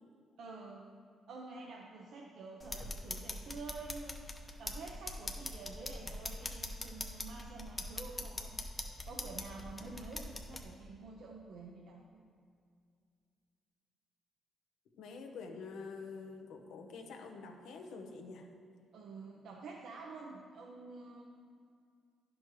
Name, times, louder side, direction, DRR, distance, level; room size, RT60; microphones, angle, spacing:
voice 1, 0.4-1.0 1.3-4.2 4.6-8.5 9.1-12.2 18.9-21.2, right 3 dB, 75° right, -1 dB, 0.7 m, -48 dB
sound 1, 2.6-10.6, left 1 dB, 20° left, 0.7 m, -43 dB
voice 2, 15.0-18.5, left 4 dB, 80° left, 4 dB, 0.8 m, -47 dB
10.5 x 6.2 x 3.1 m, 2.2 s
cardioid pair, 90°, 0 cm